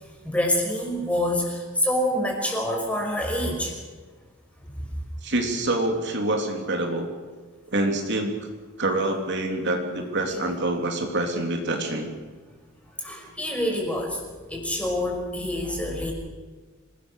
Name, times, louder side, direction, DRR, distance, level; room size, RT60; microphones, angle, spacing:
voice 1, 0.2-3.7 4.7-4.9 13.0-14.2 14.5-16.1, left 1 dB, 5° left, 1 dB, 5.6 m, -26 dB
voice 2, 5.2-7.1 7.7-8.3 8.8-12.1, right 2 dB, 55° right, 2 dB, 3.5 m, -26 dB
27.5 x 19.5 x 6.6 m, 1.4 s
head